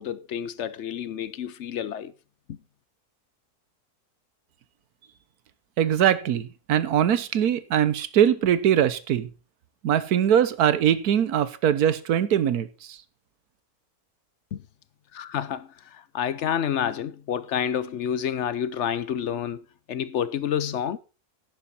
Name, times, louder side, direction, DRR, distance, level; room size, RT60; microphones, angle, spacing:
voice 1, 0.0-2.1 2.5-2.6 14.5-14.6 15.1-19.6 19.9-21.0, left 9 dB, 60° left, 0.8 m, -29 dB
voice 2, 5.8-9.3 9.8-13.0, right 10 dB, 75° right, 1.3 m, -22 dB
11.0 x 8.8 x 4.2 m
omnidirectional pair, 1.7 m